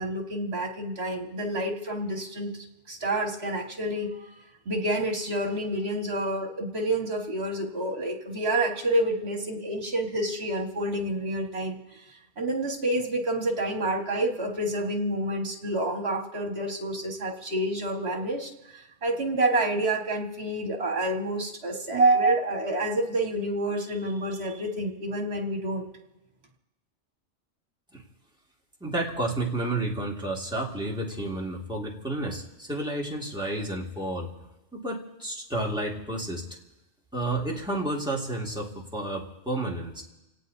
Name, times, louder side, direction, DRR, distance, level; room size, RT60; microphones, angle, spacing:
voice 1, 0.0-2.5 2.9-4.3 4.7-11.8 12.4-25.9, right 1 dB, 60° right, 2 dB, 2.0 m, -28 dB
voice 2, 28.8-34.4 34.7-36.4 37.1-40.0, right 1 dB, 5° right, -3 dB, 2.2 m, -31 dB
30.0 x 17.5 x 2.8 m, 1.0 s
omnidirectional pair, 1.2 m